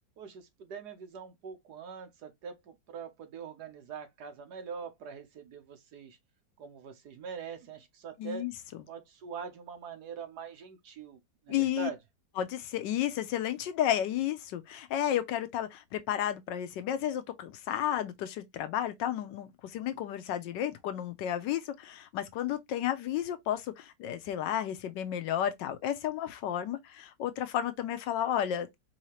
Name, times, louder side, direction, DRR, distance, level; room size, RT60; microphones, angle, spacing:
voice 1, 0.2-6.2 6.6-8.5 8.9-11.2 11.4-12.0, right 6 dB, 65° right, 1.5 m, -43 dB
voice 2, 8.2-8.5 11.5-11.9 12.4-28.8, left 11 dB, 85° left, 1.4 m, -32 dB
4.7 x 2.8 x 3.1 m
omnidirectional pair, 1.9 m